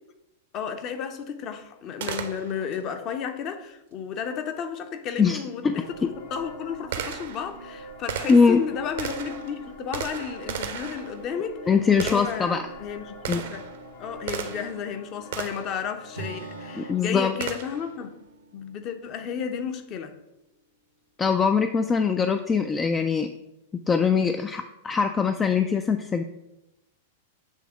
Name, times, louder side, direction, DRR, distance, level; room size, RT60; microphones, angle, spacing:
voice 1, 0.5-6.0 6.3-11.6 11.9-13.6 14.0-18.1 18.5-20.1, left 7 dB, 35° left, 7 dB, 0.7 m, -33 dB
Gunshot gunfire, 2.0-2.8 5.2-5.3 6.0-14.8 15.3-15.8 17.4-17.9, right 8 dB, 60° right, 0.8 m, -36 dB
voice 2, 5.2-5.7 8.3-8.6 11.7-12.6 13.3-13.4 16.7-17.3 21.2-23.3 23.9-26.2, left 5 dB, 20° left, 7 dB, 0.4 m, -22 dB
sound 1, 5.6-17.0, equal, 60° left, 1.0 m, -44 dB
Acoustic guitar / Strum, 16.2-20.4, right 3 dB, 80° right, 1.1 m, -45 dB
7.2 x 3.5 x 5.8 m, 0.92 s
figure-of-eight pair, 95°, 0 cm